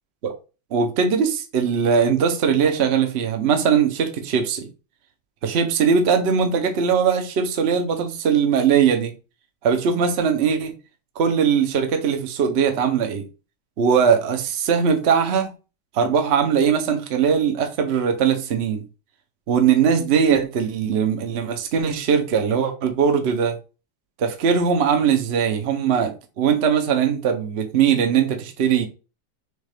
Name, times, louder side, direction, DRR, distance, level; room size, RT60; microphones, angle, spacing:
voice 1, 0.7-4.7 5.4-9.1 9.6-10.7 11.2-13.3 13.8-15.5 15.9-18.8 19.5-23.6 24.2-28.9, right 7 dB, 50° right, 0.9 m, -20 dB
6.4 x 2.4 x 3.4 m
omnidirectional pair, 1.8 m